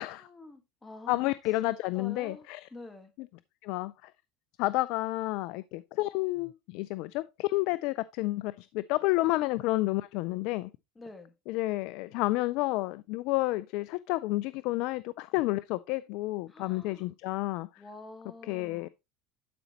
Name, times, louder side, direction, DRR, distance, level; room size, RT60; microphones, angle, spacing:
voice 1, 0.0-1.2 1.9-3.1 11.0-11.3 16.5-17.0 17.8-18.9, left 2 dB, 20° left, 1.6 m, -48 dB
voice 2, 1.1-2.7 3.2-3.3 3.6-4.1 4.6-10.7 11.5-17.7 18.4-18.9, left 19 dB, 65° left, 0.3 m, -30 dB
11.0 x 5.2 x 2.9 m
hypercardioid pair, 90°, 0 cm